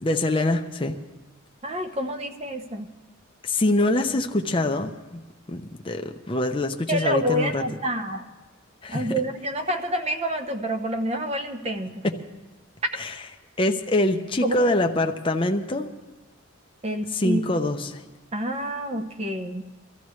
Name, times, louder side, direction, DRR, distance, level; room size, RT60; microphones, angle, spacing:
voice 1, 0.0-0.9 3.4-5.2 5.5-7.6 8.8-9.1 12.0-12.1 13.0-13.1 13.6-15.9 17.1-18.0, left 1 dB, 25° left, 4 dB, 0.7 m, -24 dB
voice 2, 1.6-2.9 6.9-8.3 8.9-12.1 14.4-14.6 16.8-17.4 18.3-19.6, equal, 30° right, 6 dB, 0.9 m, -28 dB
23.5 x 14.0 x 3.2 m, 1.2 s
head